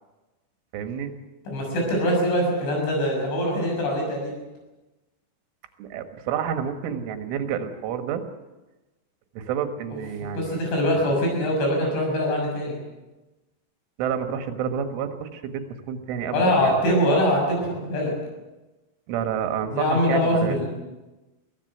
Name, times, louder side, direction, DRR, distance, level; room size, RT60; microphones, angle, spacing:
voice 1, 0.7-1.2 5.8-8.2 9.4-10.7 14.0-16.7 19.1-20.6, right 8 dB, 85° right, 8 dB, 4.0 m, -29 dB
voice 2, 1.5-4.3 10.3-12.8 16.3-18.1 19.7-20.7, equal, 75° left, 0 dB, 9.0 m, -23 dB
23.5 x 16.5 x 8.0 m, 1.1 s
omnidirectional pair, 5.5 m